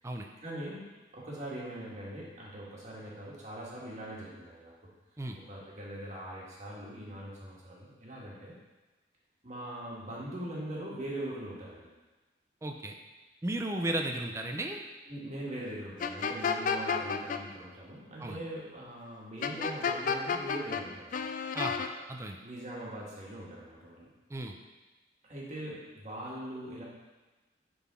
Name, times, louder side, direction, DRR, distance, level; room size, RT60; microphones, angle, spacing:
voice 1, 0.4-0.9 1.1-4.7 5.5-8.5 9.4-11.9 15.1-21.3 22.4-24.1 25.2-26.8, right 1 dB, 40° right, -5 dB, 1.6 m, -41 dB
voice 2, 12.6-13.0 13.4-14.8 18.2-18.4 21.5-22.4 24.3-24.5, right 1 dB, 15° right, 3 dB, 0.4 m, -35 dB
sound 1, 16.0-17.4 19.4-20.8 21.1-21.9, left 6 dB, 45° left, 0.4 m, -31 dB
9.5 x 3.9 x 3.6 m, 1.2 s
head